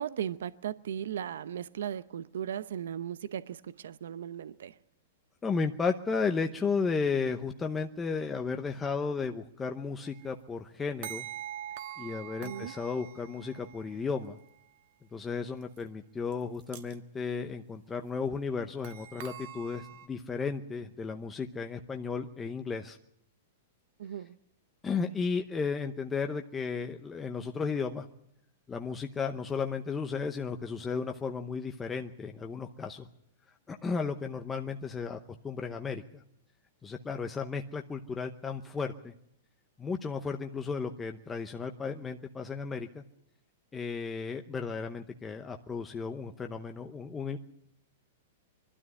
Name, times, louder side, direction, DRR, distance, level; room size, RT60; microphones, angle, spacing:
voice 1, 0.0-4.8 12.4-12.7 24.0-24.4, right 9 dB, 80° right, 0.7 m, -37 dB
voice 2, 5.4-11.3 12.0-14.4 15.1-23.0 24.8-28.1 28.7-33.1 33.7-35.2 35.4-36.2 36.8-39.1 39.8-43.0 43.7-47.4, left 5 dB, 10° left, 0.8 m, -34 dB
sound 1, 10.1-10.3 11.0-14.0 15.8-15.9 16.3-16.4 16.6-16.9 18.8-20.1, right 11 dB, 45° right, 1.5 m, -44 dB
22.5 x 12.5 x 9.9 m
supercardioid pair, 165°, 0 cm